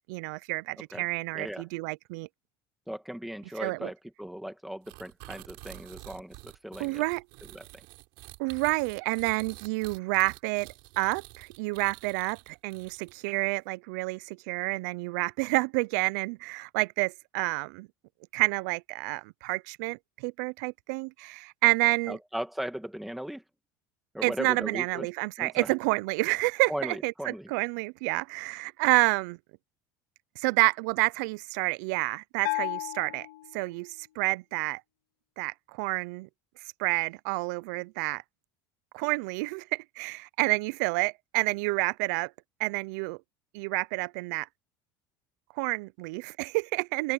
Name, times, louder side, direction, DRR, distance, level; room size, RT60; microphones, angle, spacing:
voice 1, 0.1-2.3 3.6-3.9 6.8-7.2 8.4-17.9 18.3-22.2 24.2-29.4 30.4-33.3 33.5-34.8 35.4-36.3 36.8-38.2 38.9-42.3 42.6-43.2 43.5-44.5 45.6-47.1, right 25 dB, 85° right, 0.4 m, -29 dB
voice 2, 1.3-1.7 2.9-7.0 7.5-7.8 22.1-23.4 24.1-25.1 25.4-25.7 26.7-27.5, equal, ahead, 2.1 m, -37 dB
sound 1, 4.9-13.4, right 24 dB, 65° right, 7.6 m, -48 dB
Bell, 32.4-34.1, left 23 dB, 75° left, 2.8 m, -34 dB
open air
cardioid pair, 160°, 9 cm